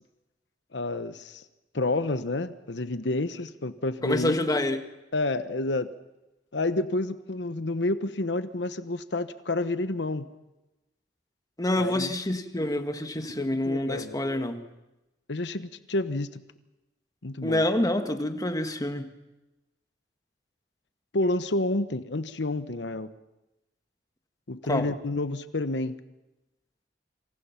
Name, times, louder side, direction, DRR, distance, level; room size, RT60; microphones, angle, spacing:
voice 1, 0.7-1.4 1.7-4.4 5.1-5.9 6.5-10.3 11.8-12.1 13.2-14.2 15.3-16.4 17.2-17.6 21.1-23.1 24.5-26.0, left 2 dB, 75° left, 12 dB, 1.1 m, -29 dB
voice 2, 4.0-4.8 11.6-14.6 17.4-19.1 24.7-24.9, left 1 dB, 20° left, 7 dB, 1.7 m, -27 dB
27.0 x 26.5 x 5.9 m, 1.0 s
head